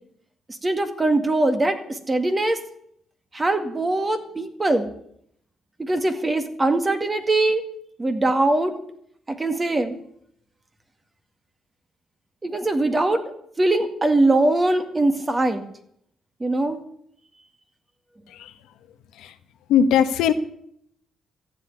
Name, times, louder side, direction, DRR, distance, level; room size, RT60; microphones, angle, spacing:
voice 1, 0.6-2.6 3.3-4.9 5.8-7.6 8.0-8.8 9.3-10.0 12.4-13.2 13.6-15.6 16.4-16.8, right 2 dB, 20° right, 7 dB, 2.1 m, -22 dB
voice 2, 19.7-20.3, left 8 dB, 85° left, 9 dB, 1.2 m, -20 dB
14.5 x 8.0 x 9.8 m, 0.69 s
cardioid pair, 90°, 0 cm